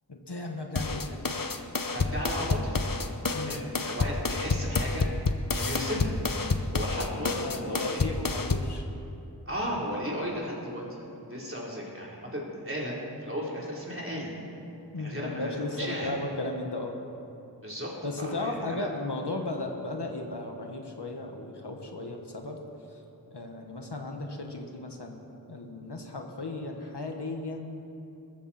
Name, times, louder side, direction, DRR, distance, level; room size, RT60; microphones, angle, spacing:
voice 1, 0.1-1.2 3.3-3.6 6.9-8.8 14.9-17.0 18.0-22.6 22.9-27.8, left 2 dB, 90° left, 2 dB, 1.6 m, -36 dB
sound 1, 0.8-8.8, left 3 dB, 55° left, 0.9 m, -29 dB
voice 2, 1.9-2.9 3.4-5.1 5.5-6.1 6.7-8.0 9.5-14.3 15.0-16.1 17.6-17.9 18.2-18.9, equal, 30° right, -4 dB, 3.8 m, -35 dB
20.5 x 14.5 x 4.3 m, 2.7 s
wide cardioid pair, 40°, 40 cm